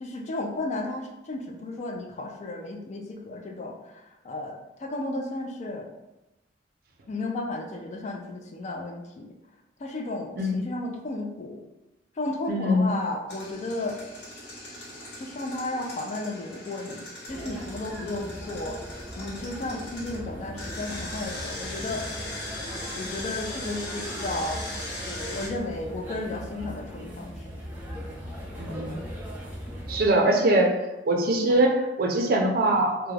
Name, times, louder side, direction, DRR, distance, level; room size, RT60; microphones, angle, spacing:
voice 1, 0.0-3.7 4.2-4.5 4.8-5.9 7.1-9.3 9.8-11.6 12.2-14.0 15.2-18.8 19.2-22.1 22.9-24.6 25.1-27.3, left 2 dB, 40° left, 1 dB, 0.3 m, -33 dB
voice 2, 12.5-12.9 28.6-29.0 29.9-30.7 31.0-33.1, right 1 dB, 55° right, 2 dB, 0.4 m, -22 dB
Engine, 13.3-20.2 20.6-25.5, left 1 dB, 65° left, 0.8 m, -39 dB
sound 1, 17.2-30.1, equal, 10° right, 0.6 m, -39 dB
2.3 x 2.1 x 3.2 m, 0.98 s
head